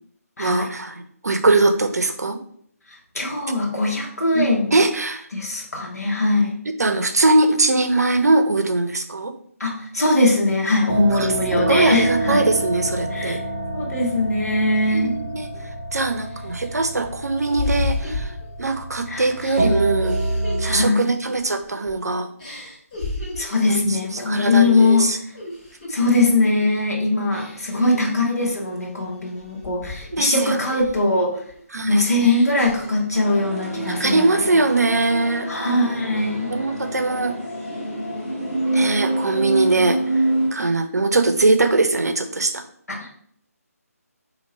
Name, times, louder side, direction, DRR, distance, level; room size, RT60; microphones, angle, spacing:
voice 1, 0.4-2.4 4.3-5.3 6.7-9.3 11.1-11.3 11.7-13.4 14.8-15.5 15.9-20.2 20.6-22.3 23.7-23.8 24.1-25.2 27.8-28.0 30.1-30.6 31.7-32.1 33.9-35.5 36.5-37.4 38.7-40.2 40.5-42.6, right 2 dB, 80° right, 7 dB, 0.6 m, -21 dB
voice 2, 3.1-4.7 5.3-6.5 9.6-12.4 13.1-13.4 13.7-15.1 19.1-19.3 20.6-21.0 23.4-25.2 25.9-31.4 31.9-34.4 35.5-36.5 42.9-43.1, left 2 dB, 75° left, -2 dB, 1.1 m, -21 dB
sound 1, 10.9-20.9, right 1 dB, 50° right, 1.4 m, -27 dB
sound 2, 15.5-15.6 16.1-18.9 19.4-22.0 22.4-23.6 24.1-24.4 24.7-26.0 26.4-26.8 27.3-27.9 28.4-30.3 30.7-33.4 33.7-34.4, left 3 dB, 30° left, 1.4 m, -34 dB
sound 3, 33.1-40.5, right 1 dB, 5° right, 1.1 m, -26 dB
2.9 x 2.8 x 4.1 m, 0.64 s
figure-of-eight pair, 155°, 9 cm